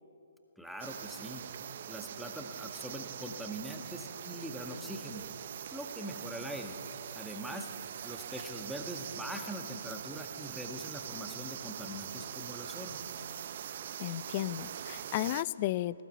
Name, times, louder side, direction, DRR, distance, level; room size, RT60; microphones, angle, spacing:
voice 1, 0.6-1.4 1.9-5.3 5.7-6.8 7.1-7.7 8.0-13.0, equal, ahead, 2 dB, 1.8 m, -42 dB
sound 1, 0.8-15.4, right 9 dB, 45° right, 0.7 m, -43 dB
voice 2, 14.0-16.0, left 15 dB, 30° left, 19 dB, 0.5 m, -34 dB
20.0 x 18.5 x 8.4 m, 2.8 s
figure-of-eight pair, 135°, 0 cm